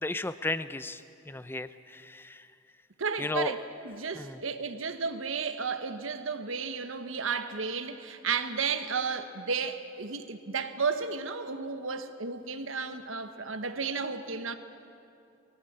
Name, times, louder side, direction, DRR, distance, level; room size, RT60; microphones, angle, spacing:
voice 1, 0.0-2.5 3.2-3.5 4.1-4.4, left 2 dB, 10° left, 13 dB, 0.5 m, -34 dB
voice 2, 3.0-3.6 3.8-14.5, right 5 dB, 85° right, 9 dB, 1.2 m, -33 dB
21.0 x 17.0 x 8.7 m, 2.7 s
head